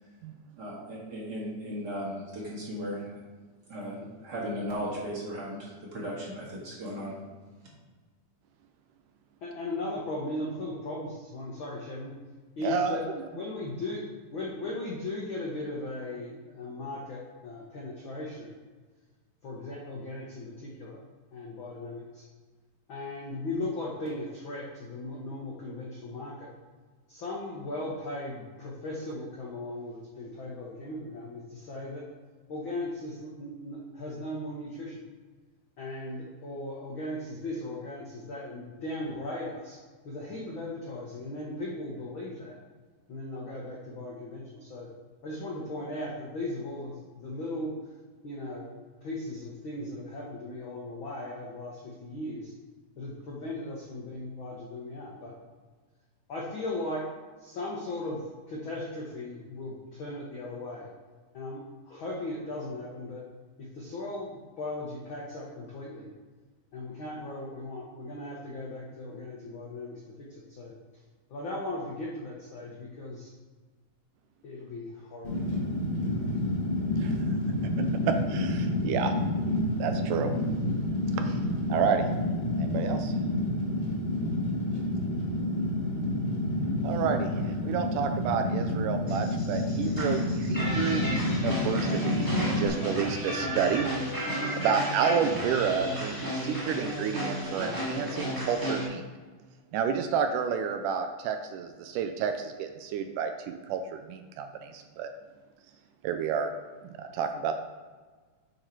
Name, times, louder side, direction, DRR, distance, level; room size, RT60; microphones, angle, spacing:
voice 1, 0.6-3.1 3.7-7.1, equal, 40° right, -6 dB, 1.9 m, -36 dB
voice 2, 9.4-12.1 12.6-13.0 13.3-14.0 14.3-18.6 19.4-21.0 21.3-22.2 22.9-26.5 27.1-32.0 32.5-35.0 35.8-39.8 40.0-42.6 43.1-44.9 45.2-47.7 48.2-48.7 49.0-52.5 53.0-55.3 56.3-57.0 57.4-58.2 58.5-60.9 61.3-61.6 61.8-63.2 63.7-66.1 66.7-70.0 70.3-70.7 71.3-73.3 74.4-75.6, left 2 dB, 70° left, -4 dB, 1.2 m, -37 dB
voice 3, 12.6-13.3 77.0-77.2 78.1-79.2 79.8-80.3 81.2-81.4 81.7-82.1 82.6-83.1 86.8-92.3 92.6-93.9 94.5-99.0 99.7-105.1 106.0-106.5 107.0-107.5, right 7 dB, 80° right, 7 dB, 2.0 m, -30 dB
Fire, 75.2-92.7, left 1 dB, 50° left, 0.6 m, -29 dB
sound 1, 89.1-98.9, equal, 10° right, 1.1 m, -33 dB
8.7 x 4.0 x 4.6 m, 1.4 s
omnidirectional pair, 3.8 m